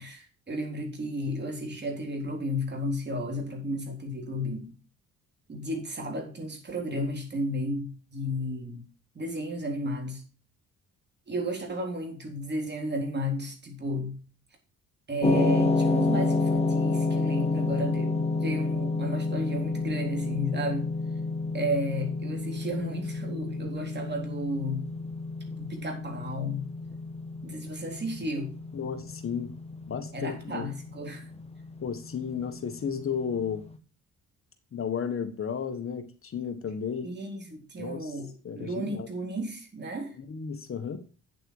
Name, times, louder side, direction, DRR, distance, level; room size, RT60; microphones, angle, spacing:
voice 1, 0.0-4.6 5.5-8.8 9.2-10.2 11.3-14.2 15.1-20.9 21.5-24.9 25.6-26.7 27.4-28.6 30.1-31.3 37.0-40.2, equal, 35° right, 3 dB, 3.7 m, -33 dB
sound 1, 15.2-33.5, left 3 dB, 20° left, 1.4 m, -30 dB
voice 2, 28.7-29.5 29.9-30.7 31.8-33.6 34.7-37.1 37.8-38.1 38.4-39.1 40.2-41.0, left 7 dB, 45° left, 8 dB, 1.5 m, -33 dB
8.6 x 7.8 x 4.8 m, 0.36 s
cardioid pair, 90°, 30 cm